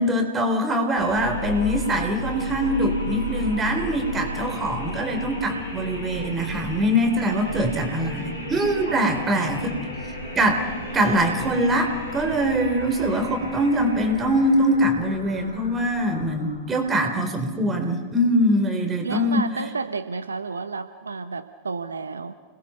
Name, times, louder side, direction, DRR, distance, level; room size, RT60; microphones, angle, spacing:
voice 1, 0.0-9.7 10.3-10.7 10.9-19.4, equal, 20° right, 5 dB, 4.0 m, -23 dB
sound 1, 1.0-16.9, left 1 dB, 75° left, 5.5 m, -34 dB
voice 2, 7.3-7.9 8.9-9.1 19.0-22.3, right 4 dB, 75° right, 10 dB, 0.9 m, -32 dB
30.0 x 20.5 x 5.9 m, 1.5 s
figure-of-eight pair, 90°, 0 cm